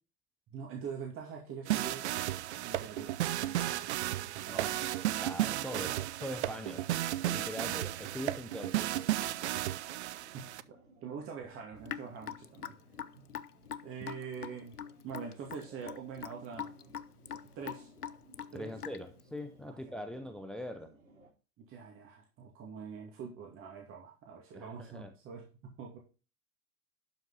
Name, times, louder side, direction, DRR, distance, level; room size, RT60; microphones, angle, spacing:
voice 1, 0.5-3.9 4.2-4.8 5.7-6.0 10.3-12.7 13.8-14.8 15.0-16.7 17.3-17.9 18.5-18.8 19.7-20.0 21.6-26.0, right 6 dB, 30° right, 1 dB, 2.3 m, -45 dB
sound 1, 1.7-10.6, right 14 dB, 50° right, 0.6 m, -34 dB
voice 2, 4.5-6.0 6.2-6.9 7.2-8.9 18.5-20.9 24.5-25.1, equal, ahead, 8 dB, 0.4 m, -42 dB
sound 2, 6.8-21.3, right 2 dB, 70° right, 4.1 m, -61 dB
Raindrop / Drip, 11.9-19.2, left 8 dB, 85° left, 0.7 m, -43 dB
12.0 x 5.8 x 4.1 m, 0.34 s
figure-of-eight pair, 100°, 44 cm